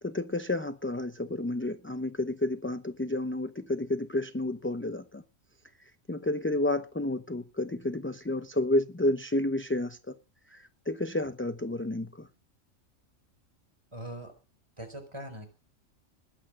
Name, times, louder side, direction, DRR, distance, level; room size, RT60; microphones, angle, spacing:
voice 1, 0.0-5.2 6.1-10.1 10.5-12.3, left 1 dB, 15° left, 10 dB, 0.6 m, -30 dB
voice 2, 13.9-14.3 14.8-15.5, right 1 dB, 20° right, 5 dB, 4.6 m, -41 dB
20.5 x 8.9 x 6.3 m, 0.34 s
omnidirectional pair, 1.4 m